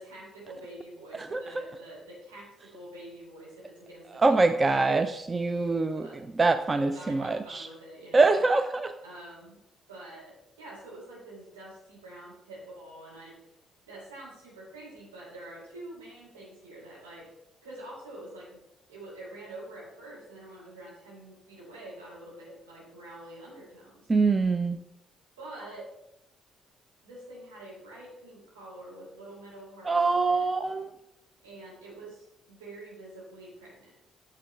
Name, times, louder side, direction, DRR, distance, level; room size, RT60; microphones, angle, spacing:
voice 1, 0.0-4.5 5.9-6.2 6.8-8.4 9.0-9.6 9.9-13.3 13.8-17.2 17.6-18.6 18.9-24.1 25.4-25.8 27.0-30.4 31.4-33.9, right 1 dB, 80° right, -6 dB, 3.3 m, -46 dB
voice 2, 4.2-6.1 6.4-7.7 8.1-8.9 24.1-24.8 29.9-30.9, right 3 dB, 30° right, 10 dB, 0.4 m, -24 dB
8.8 x 6.8 x 3.5 m, 0.87 s
figure-of-eight pair, 45°, 0 cm